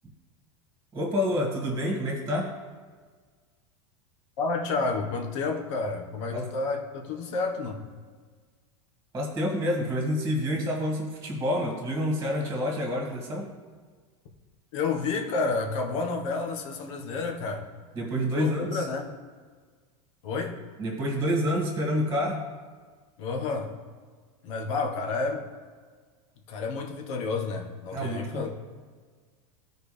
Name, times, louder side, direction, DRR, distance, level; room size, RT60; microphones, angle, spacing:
voice 1, 0.9-2.5 6.3-6.5 9.1-13.5 18.0-18.9 20.8-22.4 27.9-28.5, equal, 15° right, -2 dB, 1.9 m, -28 dB
voice 2, 4.4-7.9 14.7-17.6 18.3-19.1 20.2-20.6 23.2-23.7 24.4-25.4 26.5-28.5, left 4 dB, 70° left, 3 dB, 1.4 m, -30 dB
13.5 x 4.7 x 3.4 m, 1.5 s
supercardioid pair, 120°, 16 cm